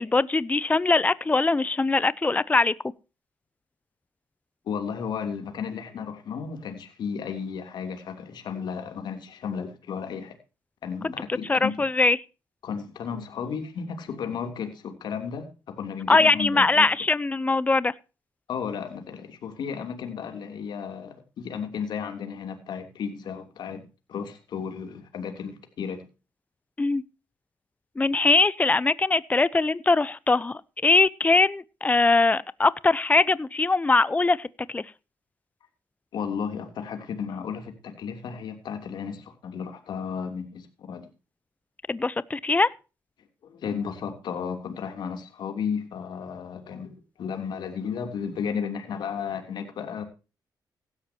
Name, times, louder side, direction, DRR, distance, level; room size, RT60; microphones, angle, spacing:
voice 1, 0.0-2.7 11.0-11.1 11.5-12.2 16.1-17.9 26.8-27.0 28.0-34.8 41.9-42.7, left 3 dB, 20° left, 0.7 m, -22 dB
voice 2, 4.6-10.3 10.8-11.7 12.6-16.8 18.5-23.8 24.1-26.1 36.1-41.1 43.4-50.0, left 6 dB, 75° left, 3.2 m, -34 dB
16.5 x 13.0 x 2.9 m
cardioid pair, 90°, 7 cm